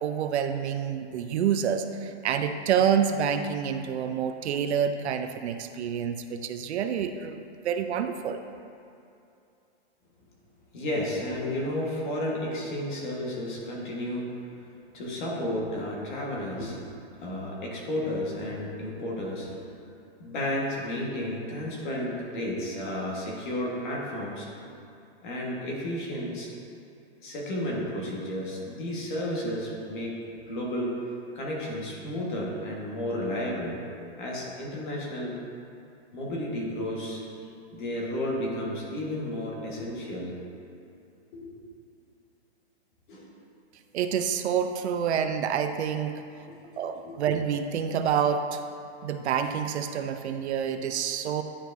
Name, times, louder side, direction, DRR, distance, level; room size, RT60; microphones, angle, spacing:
voice 1, 0.0-7.4 7.6-8.4 43.9-46.2 46.8-48.6 49.0-51.4, right 8 dB, 80° right, 8 dB, 0.5 m, -27 dB
voice 2, 10.7-14.3 14.9-16.8 17.2-19.6 20.2-24.5 25.2-26.5 27.2-30.2 30.5-30.9 31.3-33.8 34.2-35.4 36.1-40.4 41.3-41.5 43.1-43.3 46.5-46.7 47.0-47.2, left 1 dB, 45° left, -3 dB, 1.5 m, -32 dB
10.0 x 4.6 x 2.6 m, 2.6 s
hypercardioid pair, 165°, 33 cm